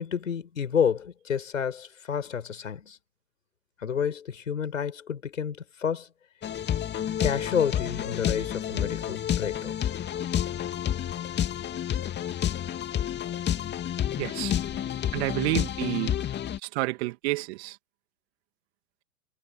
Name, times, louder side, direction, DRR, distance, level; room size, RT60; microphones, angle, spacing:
voice 1, 0.0-3.0 3.8-6.1 7.2-9.9, left 7 dB, 85° left, 7.2 m, -30 dB
sound 1, 6.4-16.6, left 10 dB, 25° left, 2.5 m, -29 dB
voice 2, 14.2-14.6 15.1-16.1 16.6-17.8, right 21 dB, 55° right, 2.2 m, -29 dB
hypercardioid pair, 100°, 38 cm